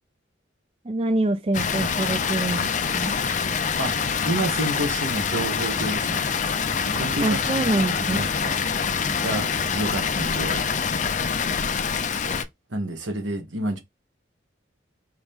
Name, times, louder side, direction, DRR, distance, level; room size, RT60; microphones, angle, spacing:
voice 1, 0.8-3.2 7.2-8.3, right 2 dB, 30° right, 0.4 m, -25 dB
Water, 1.5-12.4, left 6 dB, 40° left, 0.5 m, -25 dB
voice 2, 4.2-6.2 6.9-7.6 8.1-8.5 9.2-10.6 12.7-13.8, right 1 dB, 80° right, 1.4 m, -29 dB
4.9 x 3.1 x 3.5 m
head